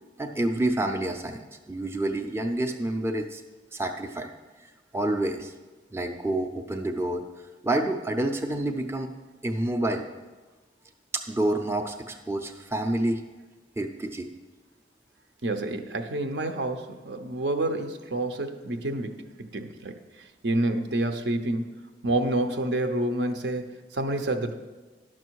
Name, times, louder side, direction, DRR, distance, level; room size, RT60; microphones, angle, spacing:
voice 1, 0.2-3.4 3.7-4.3 4.9-5.5 5.9-7.2 7.6-9.1 9.4-10.1 11.1-13.2 13.8-14.3, right 1 dB, 15° right, 3 dB, 0.5 m, -28 dB
voice 2, 15.4-21.7 22.0-24.5, right 1 dB, 70° right, 6 dB, 0.8 m, -28 dB
11.0 x 6.2 x 4.6 m, 1.3 s
head